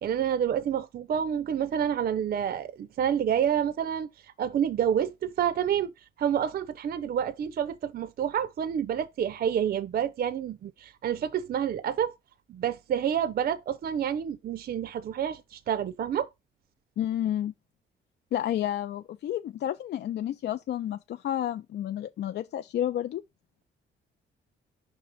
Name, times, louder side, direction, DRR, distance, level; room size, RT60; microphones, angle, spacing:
voice 1, 0.0-5.9 6.2-12.1 12.5-16.3, right 9 dB, 50° right, 0.5 m, -28 dB
voice 2, 17.0-17.5 18.3-23.2, left 11 dB, 60° left, 0.4 m, -30 dB
5.3 x 3.3 x 5.6 m
cardioid pair, 90°, 20 cm